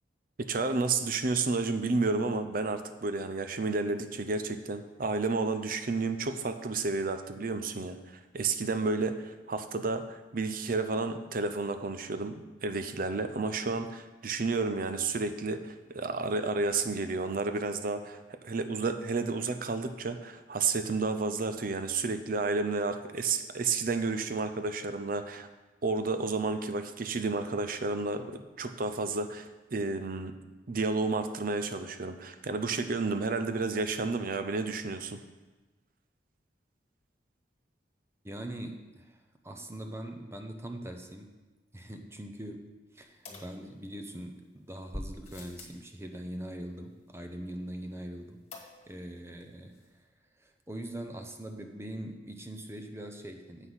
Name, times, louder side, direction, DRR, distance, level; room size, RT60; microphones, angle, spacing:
voice 1, 0.4-8.0 8.3-25.5 25.8-30.3 30.7-35.2, right 3 dB, 50° right, 9 dB, 0.6 m, -31 dB
voice 2, 38.2-41.3 41.7-42.7 42.9-48.4 48.9-49.8 50.4-53.7, right 1 dB, 15° right, 5 dB, 0.7 m, -42 dB
sound 1, 43.2-44.2 44.9-45.8 48.5-49.1 49.4-49.5 49.7-49.8, left 1 dB, 35° left, 1.6 m, -44 dB
8.1 x 5.6 x 6.2 m, 1.2 s
head